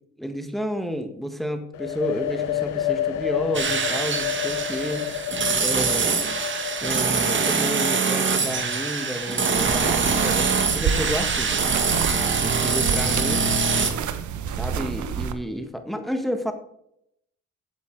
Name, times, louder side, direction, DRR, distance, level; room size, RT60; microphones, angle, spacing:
voice 1, 0.2-5.1 5.6-6.1 6.8-11.5 12.4-13.5 14.5-16.5, equal, ahead, 6 dB, 1.7 m, -30 dB
sound 1, 1.7-9.4, left 12 dB, 85° left, 1.2 m, -30 dB
sound 2, 3.5-13.9, right 5 dB, 40° right, 1.9 m, -24 dB
sound 3, 9.5-15.3, right 7 dB, 75° right, 1.1 m, -29 dB
16.0 x 8.4 x 4.7 m, 0.76 s
cardioid pair, 90°, 30 cm